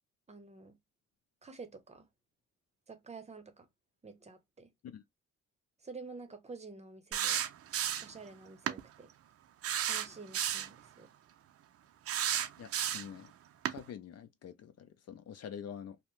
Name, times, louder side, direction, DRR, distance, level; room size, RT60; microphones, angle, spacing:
voice 1, 0.3-0.8 1.4-2.1 2.9-3.7 4.0-4.7 5.8-7.4 8.0-9.1 9.8-11.1, right 4 dB, 20° right, 0.7 m, -49 dB
sound 1, 7.1-8.2 8.7-8.8 9.6-10.7 12.1-13.2 13.7-13.8, right 10 dB, 50° right, 0.5 m, -33 dB
voice 2, 12.6-13.3 13.7-16.0, left 8 dB, 55° left, 0.5 m, -46 dB
2.7 x 2.1 x 3.1 m
cardioid pair, 90°, 30 cm